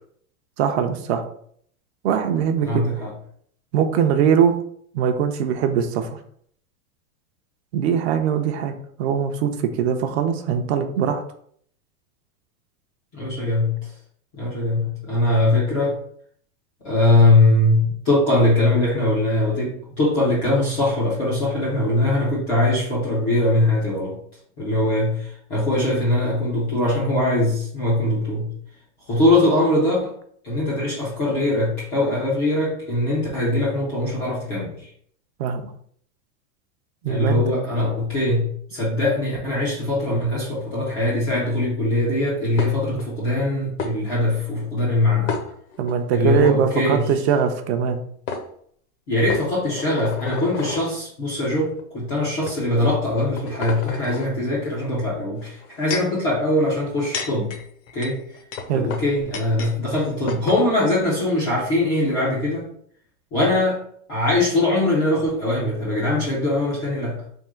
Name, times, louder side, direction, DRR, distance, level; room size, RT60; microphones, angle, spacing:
voice 1, 0.6-1.2 2.0-2.8 3.7-4.6 4.9-6.2 7.7-11.2 35.4-35.7 37.0-37.4 45.8-48.0 58.7-58.9, right 7 dB, 50° right, 7 dB, 0.5 m, -21 dB
voice 2, 2.6-3.1 13.1-13.9 14.3-16.0 16.8-24.2 24.6-28.5 29.1-30.1 30.4-34.9 37.0-45.4 46.1-47.1 49.1-57.5 57.9-58.2 58.7-62.7 63.3-63.8 64.1-67.2, left 1 dB, 15° left, -7 dB, 0.3 m, -21 dB
sound 1, 42.6-43.1 43.8-43.9 45.3-45.9 46.4-46.5 47.8-47.9 48.3-48.4 49.3-50.9 51.7-51.8 52.5-52.6 53.1-54.3 55.4-56.2 56.8-59.7 60.0-60.1 60.3-60.6, left 4 dB, 55° left, 0.7 m, -31 dB
3.6 x 2.7 x 4.3 m, 0.63 s
supercardioid pair, 160°, 45 cm